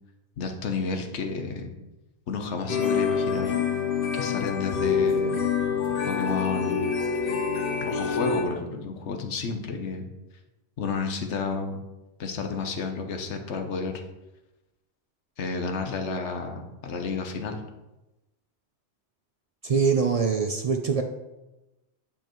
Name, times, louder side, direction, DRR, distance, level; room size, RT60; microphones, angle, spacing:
voice 1, 0.4-1.7 2.3-3.5 4.1-5.4 6.1-6.9 7.9-10.0 10.8-11.8 12.2-13.9 15.4-17.6, left 4 dB, 85° left, 5 dB, 1.2 m, -31 dB
sound 1, 2.7-8.4, left 6 dB, 55° left, 0.9 m, -26 dB
voice 2, 19.6-21.0, right 5 dB, 55° right, 5 dB, 0.4 m, -23 dB
8.8 x 5.3 x 3.0 m, 1.0 s
omnidirectional pair, 1.2 m